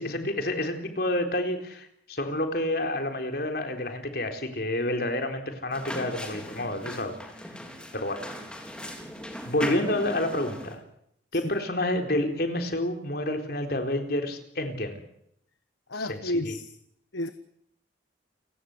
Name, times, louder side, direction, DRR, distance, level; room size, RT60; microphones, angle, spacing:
voice 1, 0.0-7.1 7.9-8.2 9.5-10.8 11.3-15.0 15.9-16.6, left 1 dB, 55° left, 3.9 m, -29 dB
sound 1, 5.7-10.8, equal, 5° left, 3.8 m, -38 dB
voice 2, 15.9-16.7 17.1-17.3, left 1 dB, 90° left, 1.3 m, -31 dB
29.5 x 17.5 x 8.0 m
head